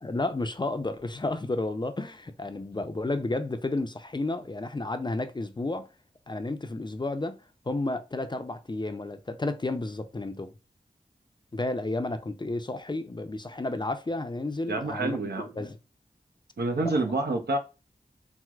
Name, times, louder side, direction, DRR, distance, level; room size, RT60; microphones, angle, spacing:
voice 1, 0.0-5.9 6.3-7.4 7.7-10.5 11.5-15.2 15.6-15.8 16.8-16.9, left 2 dB, 25° left, 0.4 m, -31 dB
voice 2, 14.7-15.5 16.6-17.6, right 2 dB, 75° right, 0.7 m, -28 dB
4.4 x 2.0 x 2.3 m
wide cardioid pair, 50°, 17 cm